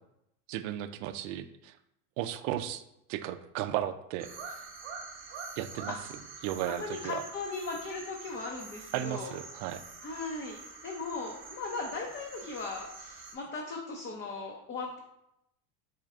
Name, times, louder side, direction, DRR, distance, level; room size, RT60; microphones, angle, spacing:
voice 1, 0.5-1.7 2.2-2.8 3.1-4.6 5.6-6.0 6.4-7.2 8.9-9.8, right 12 dB, 65° right, 11 dB, 0.5 m, -35 dB
sound 1, 4.2-13.3, right 4 dB, 25° right, 0.9 m, -46 dB
voice 2, 6.7-9.4 10.0-15.0, left 3 dB, 25° left, 0 dB, 0.6 m, -38 dB
4.5 x 3.2 x 3.6 m, 0.82 s
supercardioid pair, 115°, 45 cm